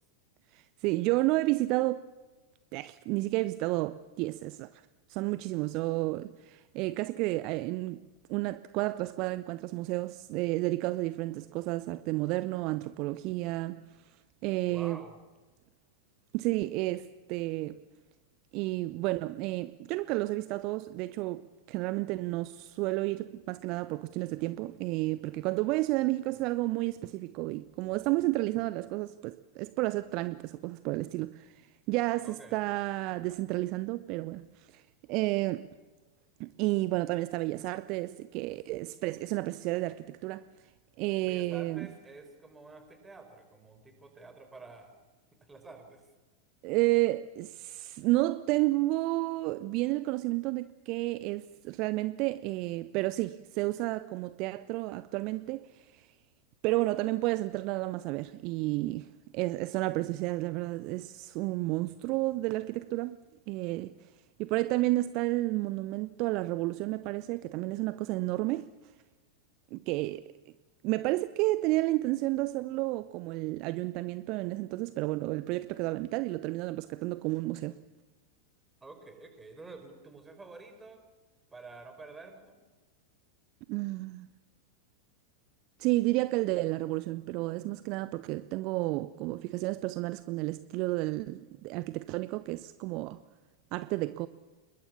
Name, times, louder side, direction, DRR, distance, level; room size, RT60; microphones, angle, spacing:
voice 1, 0.5-2.1 2.7-4.8 5.1-8.0 8.3-14.2 14.4-15.0 16.3-17.8 18.5-34.8 35.1-35.7 36.4-40.7 41.0-41.9 46.6-56.1 56.6-63.2 63.5-64.1 64.4-68.7 69.7-70.2 70.8-77.8 83.7-84.3 85.8-93.2 93.7-94.3, right 19 dB, 40° right, 0.7 m, -31 dB
voice 2, 14.6-15.2 32.2-32.6 41.2-45.0 45.4-46.1 78.8-81.0 81.5-82.6, right 3 dB, 10° right, 5.0 m, -49 dB
28.0 x 22.0 x 7.1 m
figure-of-eight pair, 90°, 0 cm